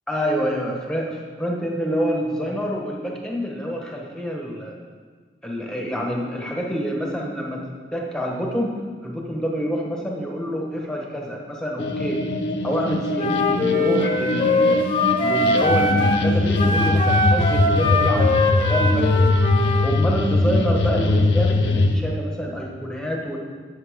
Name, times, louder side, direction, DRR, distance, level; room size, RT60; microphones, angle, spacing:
voice 1, 0.1-4.8 5.4-7.6 7.9-8.7 9.0-12.2 12.6-14.8 15.2-18.4 18.7-19.4 19.8-23.4, equal, 5° left, -1 dB, 1.2 m, -27 dB
sound 1, 11.8-22.0, left 2 dB, 75° left, 0.7 m, -21 dB
Wind instrument woodwind instrument, 13.2-16.3 16.5-19.9, left 2 dB, 30° left, 0.8 m, -22 dB
11.0 x 7.4 x 3.7 m, 1.5 s
head